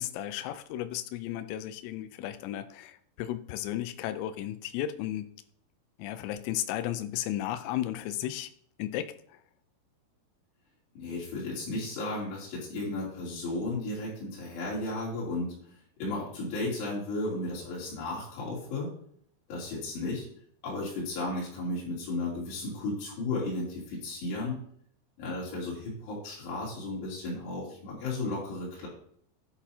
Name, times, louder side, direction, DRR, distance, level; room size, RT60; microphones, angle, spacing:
voice 1, 0.0-5.3 6.0-8.5 8.8-9.1, left 12 dB, 90° left, 9 dB, 2.4 m, -34 dB
voice 2, 10.9-15.7 16.0-18.9 19.5-20.3 20.6-24.6 25.2-28.9, left 2 dB, 60° left, -8 dB, 5.0 m, -34 dB
12.5 x 10.5 x 2.8 m, 0.64 s
omnidirectional pair, 5.7 m